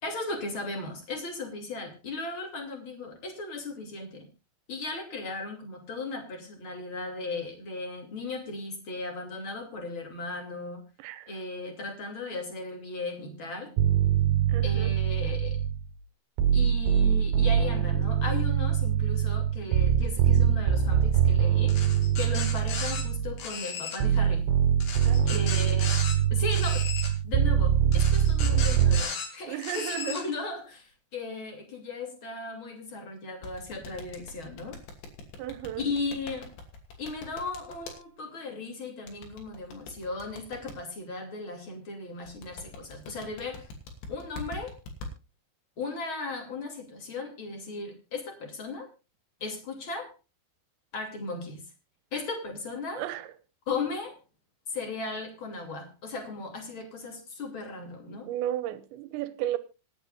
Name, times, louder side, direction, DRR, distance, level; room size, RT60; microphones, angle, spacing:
voice 1, 0.0-4.3 4.7-10.8 11.3-13.7 14.6-15.6 16.5-21.8 22.2-24.5 25.3-26.0 26.3-26.9 27.2-34.8 35.8-36.5 37.0-43.7 44.1-44.8 45.8-48.9 49.4-50.1 50.9-51.6 52.1-53.0 53.7-54.2 54.7-58.3, left 3 dB, 35° left, 3.0 m, -36 dB
voice 2, 11.0-11.3 14.5-15.0 25.1-25.5 29.5-30.2 35.4-35.9 53.0-53.3 58.3-59.6, right 13 dB, 90° right, 3.3 m, -34 dB
sound 1, 13.8-15.9 16.4-23.5 24.0-29.0, right 9 dB, 75° right, 3.3 m, -24 dB
sound 2, 21.7-23.0 23.4-24.0 24.8-26.2 26.5-27.1 27.9-29.3 29.6-30.2, left 6 dB, 60° left, 4.2 m, -36 dB
sound 3, 33.4-38.0 39.1-40.7 42.3-45.1, left 3 dB, 75° left, 4.8 m, -42 dB
26.5 x 9.2 x 2.5 m
omnidirectional pair, 5.1 m